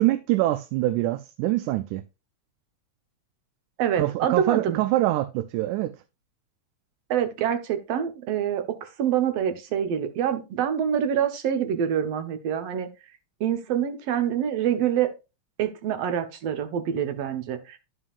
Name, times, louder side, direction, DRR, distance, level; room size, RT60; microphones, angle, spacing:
voice 1, 0.0-2.0 4.0-6.0, right 16 dB, 90° right, 2.0 m, -24 dB
voice 2, 3.8-4.8 7.1-12.9 13.4-15.1 15.6-17.8, right 9 dB, 65° right, 1.9 m, -26 dB
12.5 x 5.6 x 2.4 m
omnidirectional pair, 3.4 m